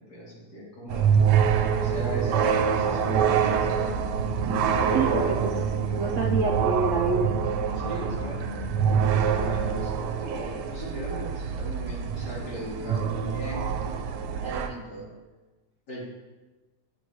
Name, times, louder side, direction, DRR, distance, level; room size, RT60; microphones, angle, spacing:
voice 1, 0.1-1.2 1.8-3.9 4.7-5.3 7.7-8.4 8.9-15.1 15.9-16.0, equal, 85° left, -7 dB, 2.8 m, -37 dB
sound 1, 0.9-14.7, right 7 dB, 85° right, 1.2 m, -26 dB
sound 2, 2.6-9.8, left 1 dB, 60° left, 1.0 m, -37 dB
voice 2, 6.0-7.3, right 4 dB, 70° right, 0 dB, 0.7 m, -26 dB
10.0 x 4.6 x 2.7 m, 1.2 s
omnidirectional pair, 1.8 m